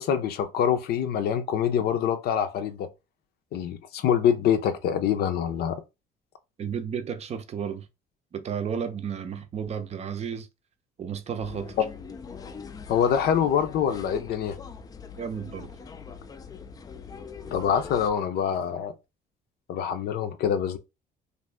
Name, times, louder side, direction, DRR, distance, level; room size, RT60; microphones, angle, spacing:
voice 1, 0.0-2.9 3.5-5.8 12.9-14.6 17.5-18.9 19.7-20.8, left 8 dB, 70° left, 0.6 m, -25 dB
voice 2, 6.6-7.9 8.3-10.5 11.0-11.8 15.2-15.7, right 7 dB, 40° right, 0.6 m, -32 dB
sound 1, 11.4-18.1, left 5 dB, 20° left, 0.3 m, -42 dB
2.6 x 2.5 x 3.3 m
cardioid pair, 110°, 17 cm